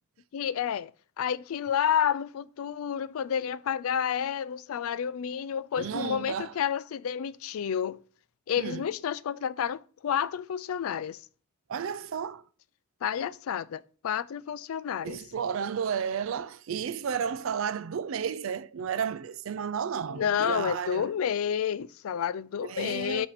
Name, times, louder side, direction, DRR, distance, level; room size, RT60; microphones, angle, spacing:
voice 1, 0.3-0.9 1.2-8.0 8.5-11.2 13.0-15.2 20.1-23.3, left 8 dB, 80° left, 0.3 m, -30 dB
voice 2, 5.8-6.5 8.6-8.8 11.7-12.4 15.0-21.1 22.5-23.3, right 7 dB, 65° right, 0.4 m, -32 dB
6.5 x 2.9 x 5.7 m
head